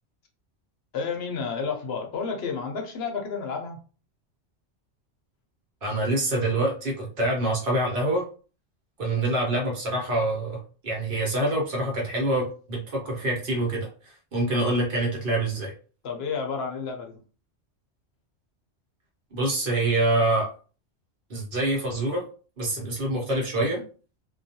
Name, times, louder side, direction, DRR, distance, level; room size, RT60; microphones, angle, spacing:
voice 1, 0.9-3.8 16.0-17.2, left 5 dB, 70° left, 3 dB, 0.8 m, -31 dB
voice 2, 5.8-8.2 9.0-15.7 19.3-20.5 21.3-22.3 22.6-23.8, right 1 dB, 55° right, -1 dB, 1.0 m, -26 dB
2.3 x 2.2 x 2.7 m, 0.38 s
omnidirectional pair, 1.1 m